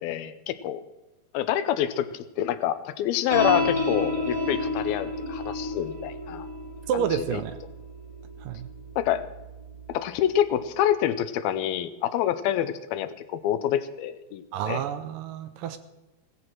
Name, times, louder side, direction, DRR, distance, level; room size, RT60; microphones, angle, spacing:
voice 1, 0.0-0.8 1.3-6.5 6.9-7.4 9.0-9.2 9.9-14.8, left 11 dB, 85° left, 12 dB, 2.6 m, -27 dB
sound 1, 3.3-10.0, left 1 dB, 25° right, 0.8 m, -31 dB
voice 2, 6.9-7.6 8.4-8.7 14.5-15.8, right 9 dB, 80° right, 11 dB, 2.1 m, -29 dB
17.0 x 14.0 x 4.6 m, 1.0 s
omnidirectional pair, 4.4 m